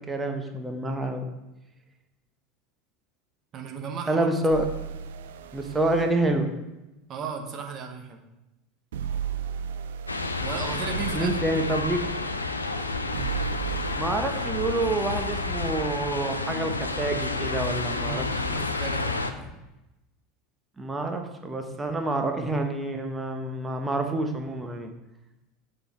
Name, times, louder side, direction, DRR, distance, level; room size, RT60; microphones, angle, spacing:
voice 1, 0.1-1.3 4.1-4.7 5.5-6.5 11.1-12.0 14.0-18.7 20.8-24.9, right 2 dB, 15° right, 4 dB, 1.0 m, -28 dB
voice 2, 3.5-4.3 5.7-5.8 7.1-8.2 10.4-11.4 18.0-19.6, right 5 dB, 35° right, 3 dB, 1.2 m, -35 dB
sound 1, 4.5-6.2 8.9-11.3 13.1-14.0, right 9 dB, 65° right, 0.4 m, -34 dB
sound 2, 10.1-19.3, left 3 dB, 80° left, 0.5 m, -30 dB
6.8 x 5.3 x 4.4 m, 0.96 s
figure-of-eight pair, 75°, 0 cm